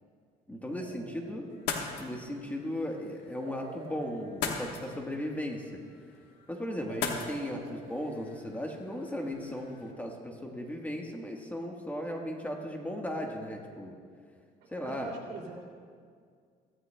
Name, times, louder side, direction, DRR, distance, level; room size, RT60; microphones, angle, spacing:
voice 1, 0.5-1.5 2.0-5.7 6.5-14.0 14.7-15.1, left 1 dB, 10° left, 1 dB, 1.3 m, -36 dB
sound 1, 0.8-2.2 3.4-5.6 6.9-9.0, right 5 dB, 60° right, 0.9 m, -50 dB
sound 2, 1.5-9.9, left 6 dB, 85° left, 1.2 m, -41 dB
voice 2, 14.8-15.7, right 4 dB, 80° right, -1 dB, 2.6 m, -42 dB
16.0 x 14.5 x 2.2 m, 2.1 s
cardioid pair, 110°, 17 cm